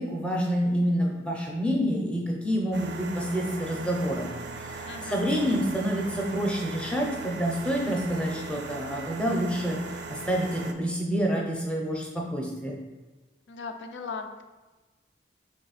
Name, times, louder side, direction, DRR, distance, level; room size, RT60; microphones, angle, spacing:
voice 1, 0.0-4.3 4.6-12.8, equal, 5° left, -1 dB, 0.6 m, -28 dB
sound 1, 2.7-10.7, right 3 dB, 65° right, 0.4 m, -39 dB
voice 2, 4.9-5.2 13.5-14.4, left 4 dB, 80° left, 6 dB, 0.4 m, -37 dB
3.5 x 3.1 x 4.0 m, 1.2 s
head